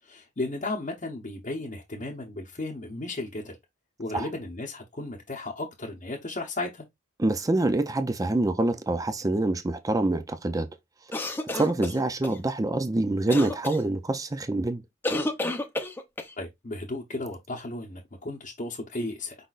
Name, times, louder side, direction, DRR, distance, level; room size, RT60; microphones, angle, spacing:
voice 1, 0.0-3.6 4.0-6.8 16.4-19.4, left 2 dB, 40° left, 0.9 m, -34 dB
voice 2, 7.2-10.7 11.5-14.8, right 2 dB, 20° right, 0.4 m, -26 dB
sound 1, 11.1-12.4 13.3-13.8 15.0-16.3, left 2 dB, 10° left, 0.7 m, -30 dB
5.1 x 4.0 x 2.5 m
head